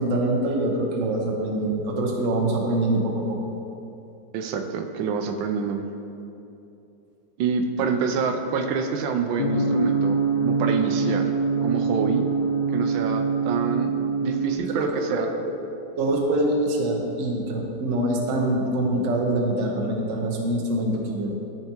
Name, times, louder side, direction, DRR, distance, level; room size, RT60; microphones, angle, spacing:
voice 1, 0.0-3.4 14.7-15.6 16.0-21.3, right 1 dB, 55° right, 0 dB, 1.0 m, -24 dB
voice 2, 4.3-5.9 7.4-11.3 11.6-12.3 12.7-13.9 14.2-15.4, right 6 dB, 85° right, 5 dB, 1.3 m, -27 dB
sound 1, 9.4-14.6, right 4 dB, 70° left, 1.2 m, -24 dB
12.5 x 4.5 x 2.9 m, 2.8 s
omnidirectional pair, 2.0 m